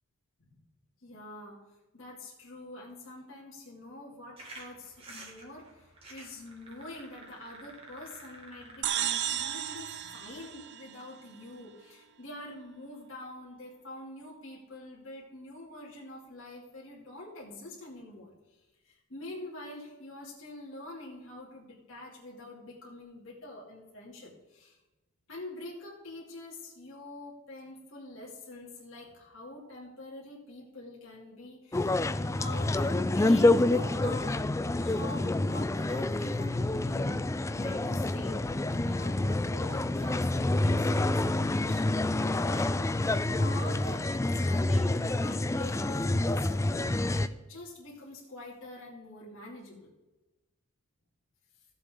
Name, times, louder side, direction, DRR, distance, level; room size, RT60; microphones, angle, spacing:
voice 1, 1.0-1.6 1.9-24.8 25.3-34.4 34.8-38.4 38.7-49.9, left 1 dB, 60° left, -4 dB, 2.8 m, -46 dB
sound 1, 4.4-10.5, right 2 dB, 25° right, 2.2 m, -51 dB
sound 2, 8.8-11.4, right 10 dB, 55° right, 0.5 m, -34 dB
sound 3, 31.7-47.3, left 2 dB, 15° left, 0.3 m, -28 dB
16.5 x 7.2 x 3.8 m, 1.1 s
head